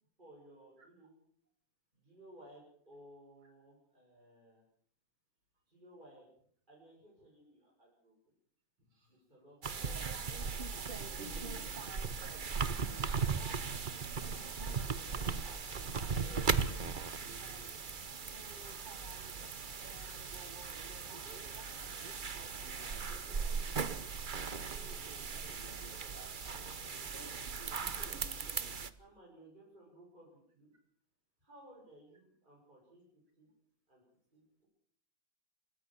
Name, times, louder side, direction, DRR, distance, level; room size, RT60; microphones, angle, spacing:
voice 1, 0.2-1.2 1.9-4.6 5.7-6.3 6.7-8.1 9.1-10.1 14.6-15.3 20.6-24.0 24.5-25.8 26.4-27.8 29.0-30.7 31.4-33.5 33.9-34.0 34.3-34.7, right 1 dB, 20° right, -5 dB, 7.3 m, -60 dB
sound 1, 9.6-28.9, right 5 dB, 45° right, 0.6 m, -38 dB
voice 2, 11.0-11.9 15.0-15.4 16.0-17.6 21.0-21.5 27.1-27.3 27.8-28.6, right 2 dB, 65° right, 4 dB, 6.1 m, -54 dB
26.5 x 15.5 x 7.6 m, 0.62 s
omnidirectional pair, 2.3 m